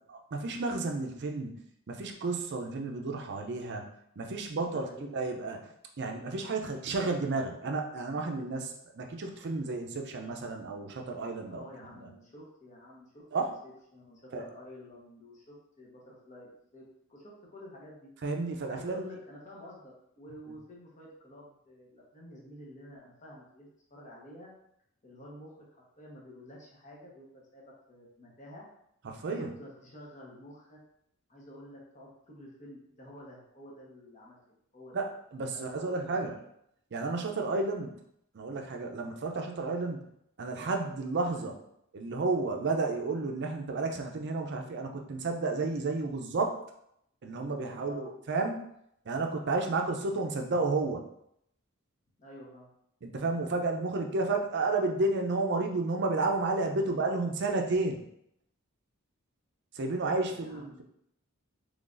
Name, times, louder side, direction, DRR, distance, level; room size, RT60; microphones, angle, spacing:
voice 1, 0.1-1.6 1.9-3.8 4.2-5.6 6.0-12.0 13.3-13.5 14.3-14.4 18.2-19.0 29.0-29.5 34.9-36.3 36.9-37.9 38.3-40.1 40.4-41.5 41.9-46.6 47.2-48.6 49.1-51.0 53.0-58.0 59.7-60.8, right 3 dB, 55° right, 3 dB, 0.5 m, -32 dB
voice 2, 4.6-5.2 11.5-16.8 17.1-18.1 18.7-24.5 25.0-28.7 29.3-30.8 31.3-34.4 34.7-35.0 35.5-36.3 41.2-41.6 47.8-48.1 52.2-52.7 60.1-60.8, left 1 dB, 35° left, -3 dB, 1.0 m, -50 dB
3.8 x 3.2 x 2.5 m, 0.74 s
head